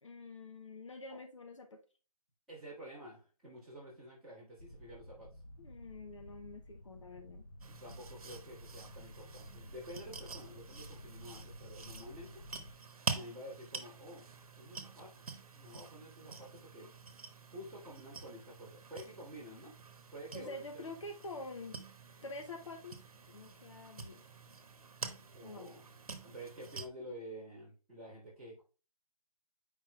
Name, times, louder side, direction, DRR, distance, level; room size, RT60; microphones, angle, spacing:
voice 1, 0.0-1.8 5.6-7.5 20.3-21.8 22.2-23.0 23.3-24.2 25.4-25.8, left 2 dB, 55° left, 5 dB, 0.7 m, -47 dB
voice 2, 2.5-5.3 7.7-12.4 13.1-14.3 14.6-15.3 15.5-16.9 17.5-19.8 20.1-20.9 25.3-25.8 26.2-28.6, equal, ahead, -16 dB, 1.9 m, -50 dB
sound 1, 4.6-12.7, left 1 dB, 35° left, 1.2 m, -53 dB
sound 2, 7.6-26.9, right 4 dB, 65° right, 1.0 m, -47 dB
7.8 x 5.3 x 2.3 m, 0.35 s
hypercardioid pair, 180°, 20 cm